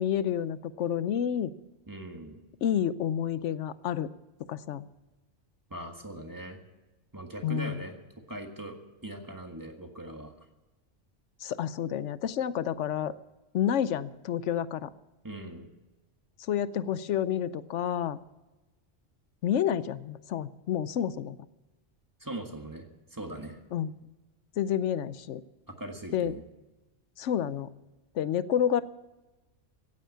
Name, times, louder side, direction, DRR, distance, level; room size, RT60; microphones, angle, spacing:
voice 1, 0.0-1.5 2.6-4.1 4.5-4.9 7.4-7.8 11.4-13.1 13.5-14.9 16.5-18.2 19.4-21.4 23.7-23.9 24.6-25.4 26.1-26.4 27.2-27.7 28.1-28.8, left 9 dB, 75° left, 16 dB, 1.0 m, -29 dB
voice 2, 1.9-2.4 5.7-6.6 7.1-8.0 8.3-10.3 15.2-15.7 22.2-22.8 23.1-23.6 25.7-26.4, right 1 dB, 15° right, 4 dB, 1.6 m, -40 dB
16.0 x 9.1 x 8.4 m, 1.1 s
omnidirectional pair, 1.3 m